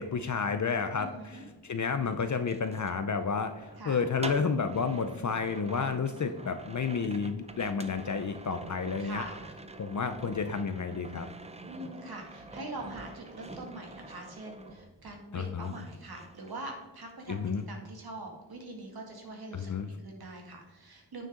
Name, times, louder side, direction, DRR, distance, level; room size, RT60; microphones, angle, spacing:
voice 1, 0.0-9.3 9.8-11.3 15.3-15.7 17.3-17.7 19.5-19.9, left 5 dB, 40° left, 8 dB, 0.6 m, -31 dB
voice 2, 0.9-1.4 3.8-4.0 5.9-6.3 9.0-9.5 11.6-17.4 17.7-21.3, right 2 dB, 55° right, 1 dB, 2.1 m, -43 dB
sound 1, 1.2-15.3 15.6-17.1 17.4-17.7, right 2 dB, 15° right, 0.5 m, -47 dB
9.1 x 6.6 x 3.7 m, 1.1 s
wide cardioid pair, 120°, 44 cm